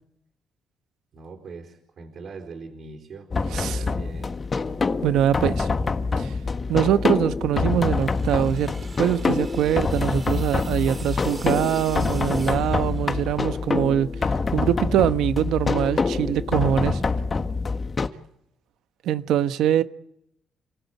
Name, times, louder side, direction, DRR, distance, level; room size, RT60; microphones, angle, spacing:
voice 1, 1.1-4.4, right 4 dB, 60° right, 4.4 m, -41 dB
sound 1, 3.3-18.1, left 4 dB, 35° left, 1.6 m, -26 dB
voice 2, 5.0-5.7 6.2-6.3 6.7-8.7 9.0-17.0 19.0-19.8, right 11 dB, 85° right, 1.1 m, -23 dB
sound 2, 7.6-13.5, right 4 dB, 35° right, 2.4 m, -44 dB
30.0 x 17.5 x 8.5 m
cardioid pair, 90°, 0 cm